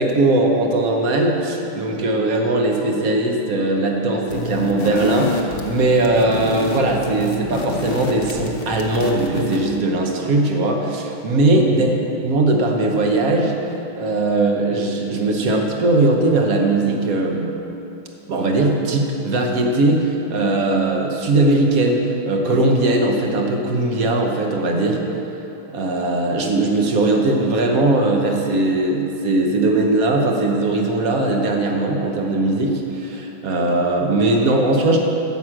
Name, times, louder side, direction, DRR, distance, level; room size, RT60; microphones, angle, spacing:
voice 1, 0.0-11.9 12.2-13.6 13.9-17.5 18.3-25.0 25.7-35.0, right 2 dB, 50° right, 2 dB, 1.2 m, -19 dB
sound 1, 4.3-9.7, left 3 dB, 55° left, 0.6 m, -28 dB
9.4 x 6.4 x 7.5 m, 2.9 s
omnidirectional pair, 2.2 m